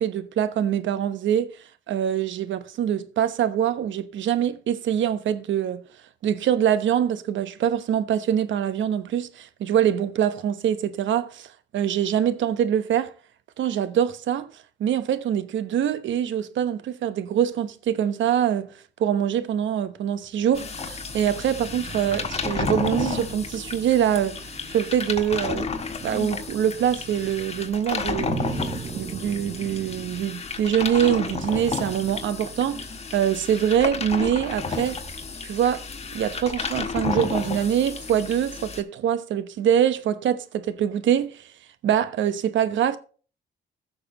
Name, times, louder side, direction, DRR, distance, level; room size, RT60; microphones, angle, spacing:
voice 1, 0.0-1.5 1.9-5.8 6.2-13.1 13.6-14.5 14.8-18.7 19.0-25.7 26.0-28.3 28.9-35.0 35.4-35.8 36.1-41.5 41.8-43.0, right 9 dB, 70° right, 1.0 m, -24 dB
sound 1, 20.1-32.7, right 6 dB, 35° right, 1.0 m, -41 dB
sound 2, 20.5-38.8, left 4 dB, 30° left, 1.6 m, -32 dB
15.0 x 6.6 x 3.0 m
cardioid pair, 90°, 20 cm